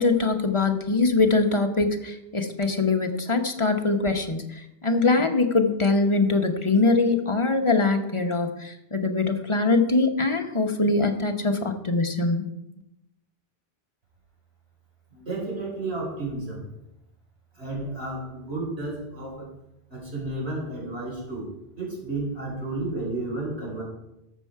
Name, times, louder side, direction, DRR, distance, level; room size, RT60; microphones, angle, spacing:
voice 1, 0.0-12.5, left 3 dB, 30° left, 5 dB, 1.0 m, -23 dB
voice 2, 15.1-16.7 17.5-19.5 19.9-23.8, right 2 dB, 80° right, -3 dB, 4.9 m, -32 dB
13.0 x 7.4 x 4.6 m, 0.88 s
omnidirectional pair, 1.1 m